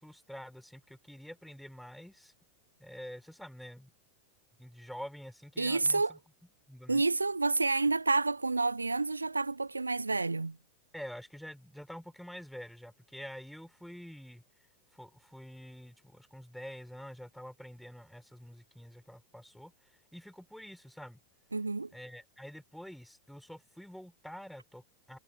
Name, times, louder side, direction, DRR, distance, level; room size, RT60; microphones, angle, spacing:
voice 1, 0.0-2.3 2.8-3.9 4.6-6.2 6.7-7.0 10.9-14.4 14.9-19.7 20.1-21.2 21.9-25.2, equal, ahead, 5.2 m, -47 dB
voice 2, 5.6-6.2 6.9-10.6 21.5-21.9, right 3 dB, 80° right, 0.5 m, -29 dB
figure-of-eight pair, 90°, 0 cm